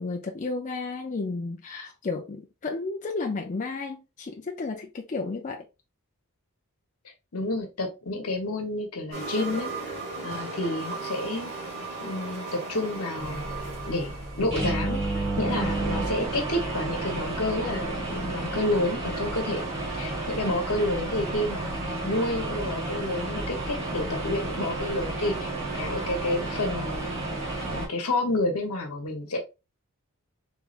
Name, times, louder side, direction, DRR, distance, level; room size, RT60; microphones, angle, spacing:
voice 1, 0.0-5.6, left 3 dB, 35° left, 0.4 m, -32 dB
voice 2, 7.3-9.9 10.2-11.5 12.0-13.4 13.8-19.7 19.9-21.7 22.0-27.1 27.6-29.4, left 2 dB, 80° left, 1.0 m, -30 dB
sound 1, 9.1-14.6, right 3 dB, 45° right, 1.7 m, -36 dB
sound 2, 13.2-27.9, right 2 dB, 25° right, 1.3 m, -31 dB
3.4 x 3.2 x 2.4 m
head